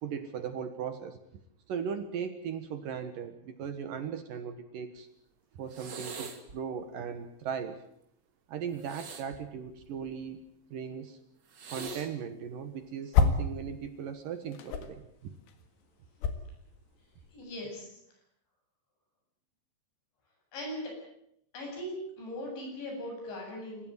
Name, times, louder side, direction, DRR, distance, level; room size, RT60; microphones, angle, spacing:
voice 1, 0.0-1.2 1.7-5.1 5.5-7.8 8.5-10.4 10.7-11.2 11.7-15.3, right 7 dB, 65° right, 9 dB, 2.5 m, -38 dB
sound 1, 5.7-6.6 8.8-10.3 11.5-12.1 13.2-13.5, right 4 dB, 50° right, 1.3 m, -44 dB
sound 2, 12.2-13.6 13.9-17.6, left 5 dB, 70° left, 3.9 m, -30 dB
voice 2, 17.3-17.9 20.5-20.9 21.5-23.9, left 1 dB, 85° left, 1 dB, 10.5 m, -39 dB
27.0 x 15.5 x 9.2 m, 0.74 s
omnidirectional pair, 5.1 m